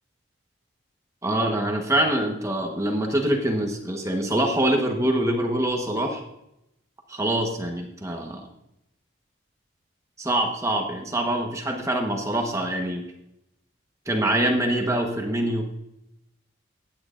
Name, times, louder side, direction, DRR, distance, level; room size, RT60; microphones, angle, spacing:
voice 1, 1.2-6.2 7.1-8.5 10.2-13.0 14.1-15.6, right 1 dB, 15° right, 2 dB, 1.1 m, -24 dB
15.0 x 9.6 x 2.5 m, 0.84 s
head